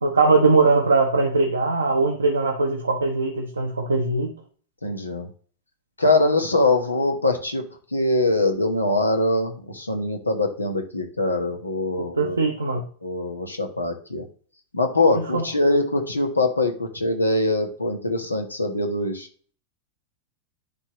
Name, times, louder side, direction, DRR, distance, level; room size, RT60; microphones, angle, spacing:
voice 1, 0.0-4.4 11.9-12.8 15.1-15.5, right 3 dB, 75° right, 0.9 m, -21 dB
voice 2, 4.8-5.3 6.0-7.6 7.9-12.4 13.0-14.2 14.7-19.3, left 2 dB, 80° left, 1.2 m, -23 dB
10.5 x 3.6 x 3.0 m
figure-of-eight pair, 90°, 0 cm